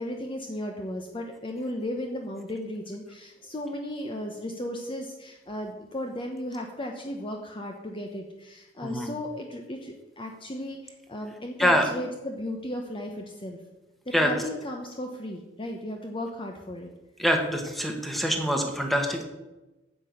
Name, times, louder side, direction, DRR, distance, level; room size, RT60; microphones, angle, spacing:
voice 1, 0.0-13.6 14.1-16.9, left 1 dB, 30° left, 2 dB, 1.0 m, -35 dB
voice 2, 11.6-11.9 14.1-14.3 17.2-19.2, equal, ahead, 3 dB, 1.5 m, -25 dB
9.1 x 7.7 x 6.6 m, 1.1 s
head